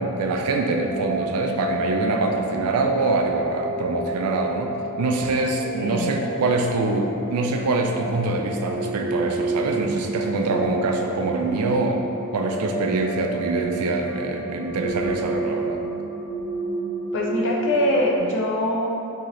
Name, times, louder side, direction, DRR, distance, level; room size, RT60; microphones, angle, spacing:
voice 1, 0.0-12.0 12.3-15.8, right 3 dB, 80° right, 3 dB, 0.4 m, -24 dB
sound 1, 0.7-18.2, right 2 dB, 65° right, 1.0 m, -31 dB
voice 2, 5.8-6.2 17.1-18.9, left 1 dB, 60° left, -2 dB, 0.5 m, -23 dB
3.1 x 2.8 x 3.8 m, 2.8 s
head